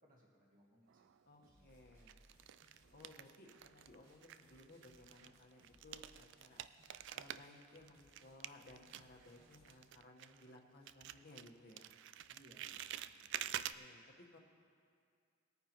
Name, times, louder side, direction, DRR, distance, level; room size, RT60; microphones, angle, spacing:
voice 1, 0.0-1.7 12.3-13.8, equal, 45° right, -4 dB, 1.8 m, -68 dB
sound 1, 0.9-1.5 2.1-3.9 4.2-10.6 10.9-13.7, right 11 dB, 60° right, 0.3 m, -48 dB
voice 2, 1.3-2.2 2.9-6.6 7.1-11.9 13.5-14.4, left 1 dB, 50° left, 1 dB, 1.3 m, -60 dB
sound 2, 1.4-9.8, right 1 dB, 85° right, 2.3 m, -69 dB
20.0 x 9.4 x 3.0 m, 2.3 s
head